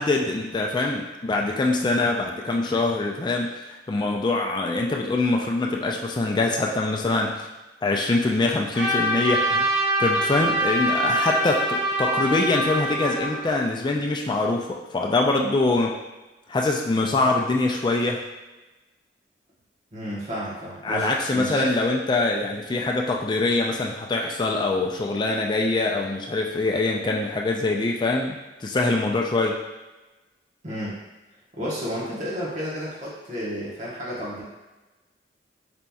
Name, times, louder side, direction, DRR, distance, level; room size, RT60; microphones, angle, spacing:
voice 1, 0.0-7.5 7.8-16.0 16.5-18.2 20.8-29.6, left 2 dB, 25° left, 0 dB, 0.3 m, -24 dB
Trumpet, 8.7-13.4, right 1 dB, 5° right, 1.1 m, -24 dB
voice 2, 19.9-21.8 30.6-31.0 31.6-34.4, equal, 45° right, -7 dB, 1.0 m, -31 dB
5.1 x 2.8 x 2.3 m, 1.1 s
head